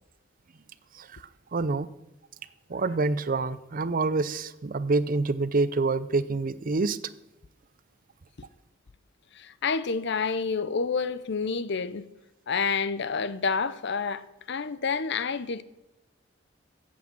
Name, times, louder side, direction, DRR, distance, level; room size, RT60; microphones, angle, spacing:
voice 1, 1.5-1.9 2.7-7.0, right 3 dB, 45° right, 0.6 m, -26 dB
voice 2, 9.4-12.0 12.5-14.2 14.5-15.6, left 5 dB, 60° left, 0.7 m, -28 dB
14.5 x 8.4 x 6.2 m
head